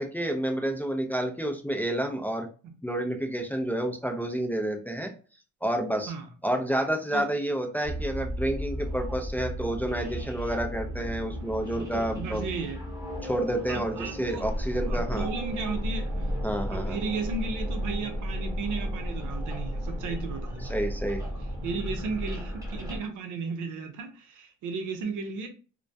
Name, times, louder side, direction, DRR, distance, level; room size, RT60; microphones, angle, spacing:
voice 1, 0.0-2.5 2.8-5.1 5.6-6.1 6.4-12.4 13.2-15.3 16.4-17.0 20.7-21.2, right 1 dB, 5° left, 0.3 m, -29 dB
sound 1, 7.8-23.0, equal, 10° right, 0.7 m, -34 dB
voice 2, 11.7-12.8 13.7-14.5 14.9-16.3 16.7-20.8 21.6-25.5, right 4 dB, 85° right, 0.6 m, -35 dB
2.2 x 2.1 x 2.6 m
cardioid pair, 90°, 30 cm